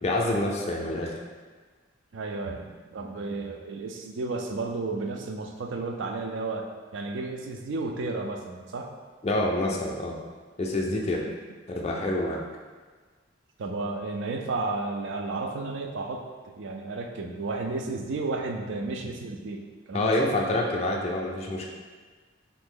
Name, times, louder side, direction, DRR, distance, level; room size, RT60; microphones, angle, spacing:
voice 1, 0.0-1.1 9.2-10.2 10.6-11.2 11.7-12.4 19.9-21.7, left 1 dB, 35° left, -1 dB, 0.4 m, -27 dB
voice 2, 2.1-8.9 13.6-19.6 19.9-20.3, right 3 dB, 70° right, 3 dB, 0.4 m, -33 dB
2.8 x 2.6 x 3.7 m, 1.4 s
head